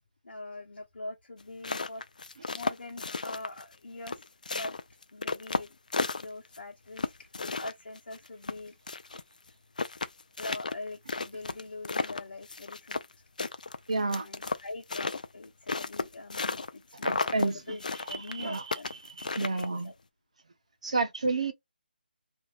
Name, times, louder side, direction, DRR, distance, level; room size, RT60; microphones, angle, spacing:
voice 1, 0.2-2.0 2.5-4.7 5.1-5.8 6.1-7.3 7.6-8.8 10.4-13.0 13.4-13.5 14.2-17.8 18.1-18.9 19.8-19.9, left 2 dB, 75° left, 0.9 m, -43 dB
sound 1, 1.4-3.8 4.1-6.6 7.0-9.2 9.5-9.6 9.8-13.1 13.4-16.7 17.0-17.5 17.8-19.9, left 4 dB, 50° left, 0.3 m, -33 dB
voice 2, 13.9-14.3 17.0-17.6 18.1-18.6 19.2-19.9 20.8-21.5, right 3 dB, 40° right, 0.6 m, -30 dB
2.6 x 2.2 x 3.2 m
hypercardioid pair, 180°, 5 cm